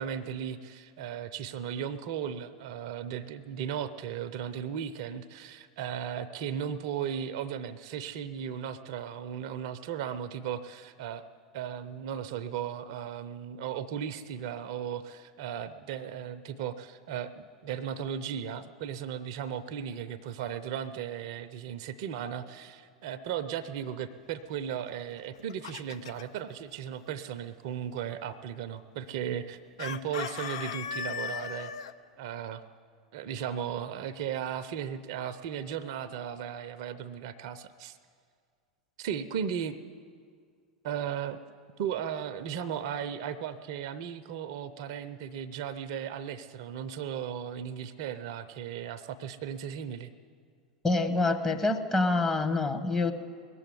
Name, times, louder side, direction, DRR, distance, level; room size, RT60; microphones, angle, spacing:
voice 1, 0.0-11.2 11.5-31.7 32.2-32.6 33.1-38.0 39.0-39.8 40.8-41.4 41.8-50.1, right 8 dB, 50° right, 13 dB, 0.6 m, -36 dB
Chicken rooster, 25.2-26.4 29.8-31.9, left 7 dB, 60° left, 0.5 m, -37 dB
voice 2, 50.8-53.1, left 2 dB, 15° left, 5 dB, 1.1 m, -26 dB
19.5 x 7.7 x 9.7 m, 2.1 s
figure-of-eight pair, 85°, 3 cm